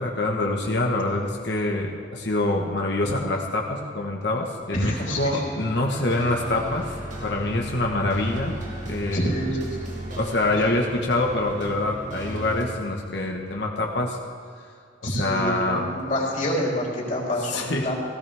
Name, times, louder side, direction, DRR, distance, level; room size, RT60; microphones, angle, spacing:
voice 1, 0.0-6.9 7.2-9.3 10.2-14.2 15.2-15.9 17.5-17.9, left 2 dB, 65° left, 0 dB, 1.3 m, -25 dB
voice 2, 4.7-5.4 9.1-9.6 10.4-10.5 15.0-17.9, equal, 45° left, -4 dB, 3.6 m, -27 dB
sound 1, 4.8-12.6, right 1 dB, 45° right, 2.2 m, -35 dB
17.5 x 15.5 x 3.5 m, 2.2 s
head